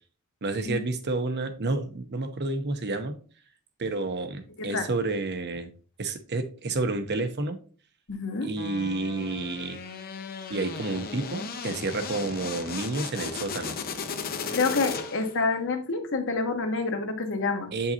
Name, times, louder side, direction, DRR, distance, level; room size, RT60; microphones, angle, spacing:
voice 1, 0.4-3.1 3.8-5.7 6.0-7.6 8.4-9.8 10.5-13.8 17.7-17.9, right 3 dB, 50° right, 8 dB, 0.8 m, -30 dB
voice 2, 8.1-8.5 14.5-17.7, left 3 dB, 60° left, 6 dB, 1.2 m, -28 dB
sound 1, 8.6-15.4, left 5 dB, 40° left, 0.7 m, -36 dB
7.9 x 5.5 x 2.8 m, 0.40 s
head